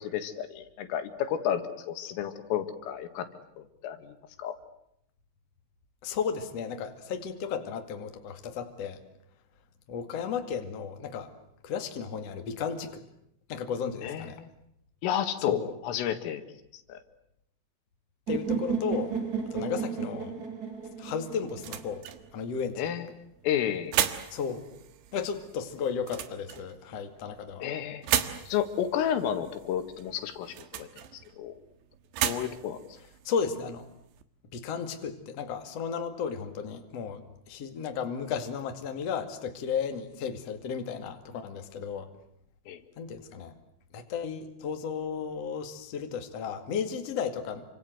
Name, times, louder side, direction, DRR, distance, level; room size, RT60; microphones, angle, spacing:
voice 1, 0.0-3.3 3.6-4.6 14.0-14.5 15.0-16.4 16.9-17.0 22.8-23.1 23.4-23.9 27.6-28.1 28.5-30.9 31.4-31.5 32.2-32.8 42.7-42.8, left 10 dB, 85° left, 9 dB, 4.5 m, -31 dB
voice 2, 6.0-9.0 9.9-11.3 11.6-13.1 13.5-14.4 15.4-15.7 18.3-19.1 19.5-20.3 21.0-22.1 22.3-22.8 24.3-24.6 25.1-27.7 33.2-33.9 34.5-42.1 43.0-43.5 43.9-47.6, left 6 dB, 45° left, 6 dB, 2.5 m, -34 dB
sound 1, 18.3-22.2, right 6 dB, 40° right, 1.3 m, -33 dB
sound 2, 20.7-34.2, right 11 dB, 70° right, 3.6 m, -37 dB
29.5 x 25.5 x 7.9 m, 0.74 s
omnidirectional pair, 5.7 m